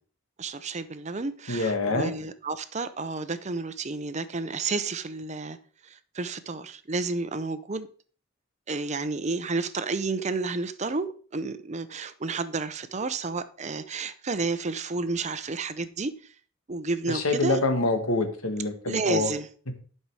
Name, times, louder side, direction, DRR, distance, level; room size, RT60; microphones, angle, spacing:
voice 1, 0.4-5.6 5.8-7.9 8.7-16.1 16.7-17.6 18.9-19.5, right 3 dB, 35° right, 0.6 m, -31 dB
voice 2, 1.5-2.1 17.1-19.3, left 3 dB, 90° left, 1.6 m, -26 dB
11.0 x 5.6 x 4.8 m
head